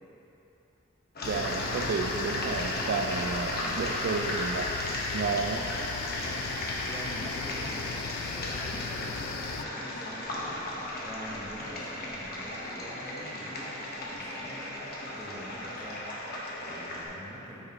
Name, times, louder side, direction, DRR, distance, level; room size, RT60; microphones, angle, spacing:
sound 1, 1.2-9.7, left 7 dB, 85° left, 0.3 m, -38 dB
sound 2, 1.2-17.1, left 1 dB, 50° left, 1.2 m, -35 dB
voice 1, 1.3-5.7, right 4 dB, 50° right, 2 dB, 0.3 m, -32 dB
voice 2, 6.1-6.5 6.8-17.7, equal, 5° right, -7 dB, 1.2 m, -45 dB
9.1 x 6.5 x 3.0 m, 2.9 s
head